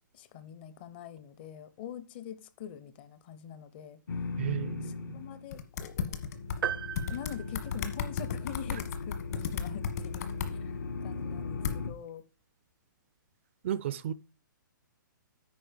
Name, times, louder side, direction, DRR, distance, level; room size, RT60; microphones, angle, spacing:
voice 1, 0.1-4.0 5.1-6.2 7.0-10.6 11.0-12.2, left 9 dB, 30° left, 0.7 m, -44 dB
sound 1, 4.1-5.5 5.8-11.9, left 4 dB, 70° left, 1.2 m, -38 dB
voice 2, 4.4-5.1 13.6-14.1, right 11 dB, 35° right, 0.4 m, -33 dB
sound 2, 5.5-6.6 6.9-10.5 11.6-11.8, left 7 dB, 50° left, 1.4 m, -34 dB
sound 3, 6.6-8.4, right 8 dB, 90° right, 0.8 m, -37 dB
9.3 x 5.2 x 5.1 m
hypercardioid pair, 160°, 11 cm